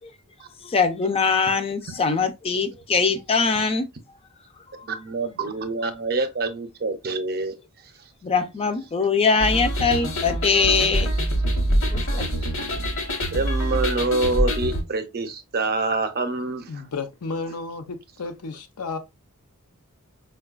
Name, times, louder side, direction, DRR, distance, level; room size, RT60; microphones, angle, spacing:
voice 1, 0.6-3.9 8.2-11.2 11.9-12.3, left 5 dB, 25° left, 0.4 m, -22 dB
voice 2, 4.7-7.6 11.5-11.6 12.0-12.3 13.3-16.8, right 3 dB, 45° right, 0.6 m, -26 dB
sound 1, 9.4-14.8, equal, 65° left, 1.0 m, -25 dB
voice 3, 16.7-19.0, left 3 dB, 90° left, 0.6 m, -32 dB
4.5 x 2.3 x 2.3 m
head